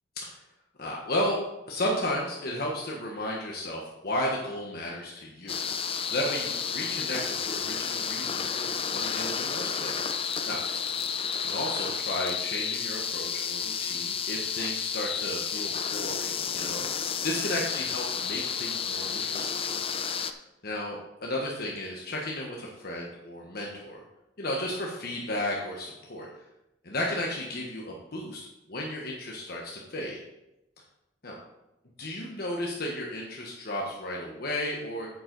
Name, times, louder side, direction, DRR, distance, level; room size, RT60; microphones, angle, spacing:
voice 1, 0.8-1.4 1.7-5.6 6.0-10.1 10.5-10.6 11.4-16.8 17.2-19.6 20.1-20.3 20.6-24.0 24.4-26.3 26.8-30.2 31.2-31.4 32.0-35.1, left 1 dB, 55° left, -2 dB, 1.3 m, -34 dB
sound 1, 5.5-20.3, left 7 dB, 30° left, 0.5 m, -31 dB
8.9 x 7.6 x 4.0 m, 0.92 s
head